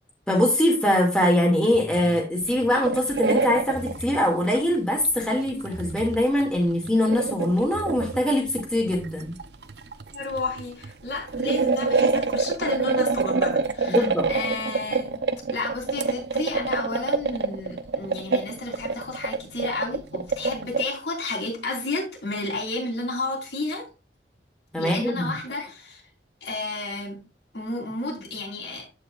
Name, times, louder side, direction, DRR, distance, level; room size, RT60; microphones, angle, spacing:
voice 1, 0.3-9.3 13.9-14.3 24.7-25.4, left 1 dB, 5° left, 2.1 m, -23 dB
sound 1, 1.7-2.2 3.6-4.3 5.7-6.3 7.6-8.3, equal, 45° right, 1.9 m, -39 dB
sound 2, 2.4-4.1 4.5-4.6 5.0-20.8, right 4 dB, 75° right, 0.7 m, -26 dB
voice 2, 10.1-15.2 15.5-23.9 24.8-26.0 26.4-27.2 27.5-28.8, left 2 dB, 85° left, 3.7 m, -31 dB
14.0 x 4.9 x 2.4 m
head